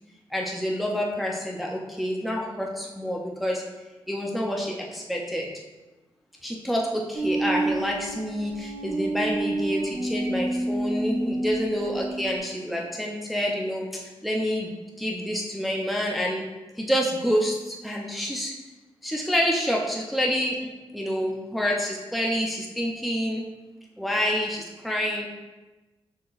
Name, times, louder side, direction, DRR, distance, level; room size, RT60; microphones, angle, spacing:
voice 1, 0.3-3.6 4.1-5.5 6.4-14.7 15.0-16.4 16.8-18.5 19.0-23.4 24.0-25.4, equal, ahead, -2 dB, 0.5 m, -28 dB
sound 1, 7.1-12.4, right 2 dB, 45° right, 0.8 m, -29 dB
6.3 x 2.8 x 2.4 m, 1.1 s
cardioid pair, 80°, 10 cm